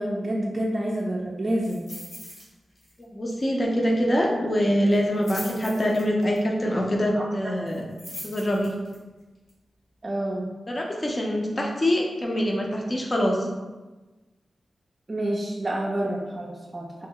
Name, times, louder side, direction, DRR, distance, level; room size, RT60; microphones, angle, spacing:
voice 1, 0.0-1.9 7.1-7.3 7.7-7.8 10.0-10.5 15.1-17.1, right 1 dB, 35° right, -3 dB, 0.4 m, -28 dB
sound 1, 1.6-2.5 2.8-3.0 3.3-3.4 4.9-6.4 7.7-9.0 9.5-9.6, left 1 dB, 60° left, 1.2 m, -41 dB
voice 2, 3.0-7.8 8.2-8.7 10.7-13.5, equal, 35° left, -1 dB, 0.7 m, -24 dB
3.2 x 2.1 x 3.7 m, 1.2 s
cardioid pair, 65°, 0 cm